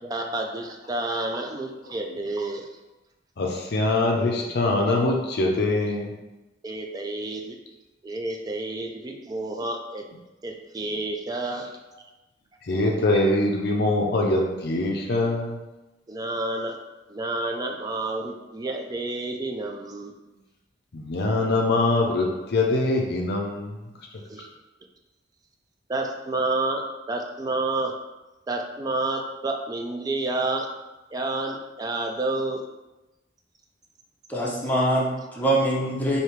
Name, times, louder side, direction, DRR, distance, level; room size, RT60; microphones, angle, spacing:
voice 1, 0.0-2.6 6.6-7.6 8.0-10.0 10.4-11.7 16.1-16.8 17.1-20.1 24.3-24.5 25.9-27.9 28.5-30.7 31.1-32.6, right 2 dB, 20° right, 2 dB, 0.3 m, -29 dB
voice 2, 3.4-6.1 12.6-15.6 18.2-18.3 20.9-23.8, left 2 dB, 60° left, 1 dB, 0.5 m, -23 dB
voice 3, 34.3-36.2, right 1 dB, 10° left, -4 dB, 0.7 m, -24 dB
3.3 x 2.7 x 4.4 m, 1.1 s
head